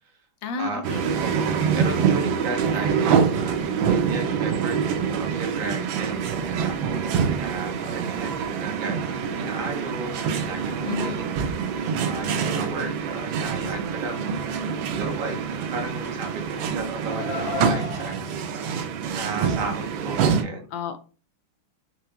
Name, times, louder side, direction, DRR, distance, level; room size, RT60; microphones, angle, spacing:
voice 1, 0.4-1.2 10.8-11.2 20.7-21.0, left 5 dB, 75° left, 8 dB, 1.3 m, -31 dB
sound 1, 0.8-20.4, right 6 dB, 85° right, 1.4 m, -26 dB
voice 2, 1.2-7.1 7.3-11.2 12.0-18.3 19.1-20.6, right 3 dB, 50° right, 2 dB, 1.3 m, -34 dB
Car, 15.6-18.1, left 4 dB, 15° left, 2.2 m, -34 dB
4.6 x 3.7 x 2.3 m, 0.36 s
omnidirectional pair, 2.1 m